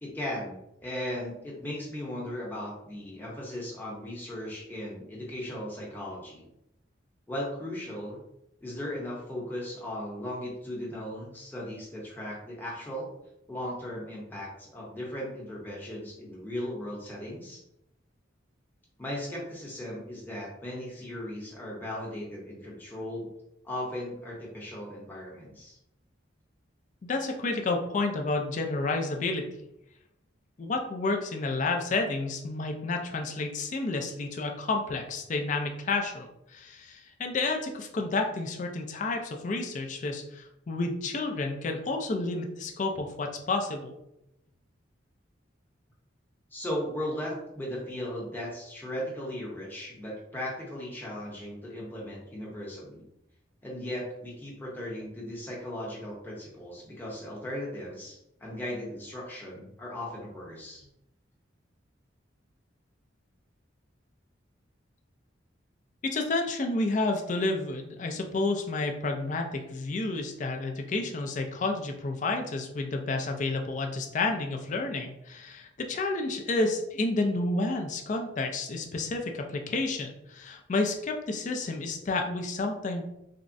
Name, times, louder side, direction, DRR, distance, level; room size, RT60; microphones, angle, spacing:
voice 1, 0.0-6.5 7.3-8.2 8.6-13.1 13.5-17.6 19.0-23.3 23.6-25.8 46.5-53.0 53.6-60.9, left 1 dB, 10° left, -5 dB, 0.7 m, -37 dB
voice 2, 27.0-29.5 30.6-43.9 66.0-83.0, left 3 dB, 40° left, 3 dB, 0.3 m, -30 dB
3.4 x 2.0 x 2.5 m, 0.84 s
head